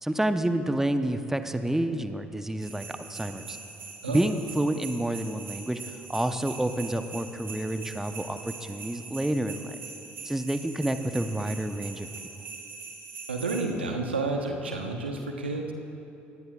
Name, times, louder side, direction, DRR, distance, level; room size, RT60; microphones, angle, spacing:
voice 1, 0.0-3.6 4.1-5.8 6.1-9.8 10.2-12.1, right 1 dB, 5° right, 8 dB, 0.9 m, -29 dB
sound 1, 2.6-13.6, right 4 dB, 45° right, 3.4 m, -42 dB
voice 2, 13.3-15.7, right 3 dB, 85° right, 3 dB, 1.1 m, -30 dB
23.5 x 18.5 x 2.5 m, 2.8 s
figure-of-eight pair, 55°, 6 cm